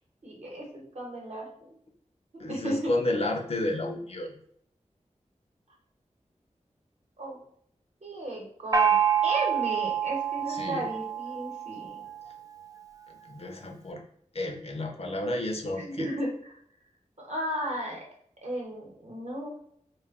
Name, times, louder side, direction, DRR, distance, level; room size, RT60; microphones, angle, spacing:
voice 1, 0.2-1.5 2.3-2.9 7.2-7.4 8.0-9.0 9.2-12.0 15.8-16.5 17.2-18.0 18.4-19.6, right 1 dB, 60° right, -1 dB, 0.9 m, -34 dB
voice 2, 2.4-4.3 10.5-10.9 13.3-14.0 14.3-16.1, left 1 dB, 50° left, 2 dB, 0.5 m, -31 dB
Gong, 8.7-12.2, right 8 dB, 25° right, 0.3 m, -27 dB
2.1 x 2.1 x 3.5 m, 0.65 s
wide cardioid pair, 85°, 13 cm